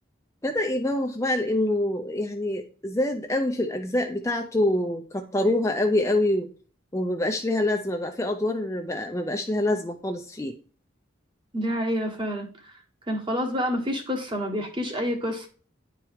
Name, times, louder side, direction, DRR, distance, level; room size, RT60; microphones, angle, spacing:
voice 1, 0.4-6.5 6.9-10.5, left 1 dB, 15° left, 0.5 m, -26 dB
voice 2, 11.5-12.5 13.1-15.5, equal, 25° right, 1.3 m, -28 dB
10.0 x 4.6 x 3.6 m
head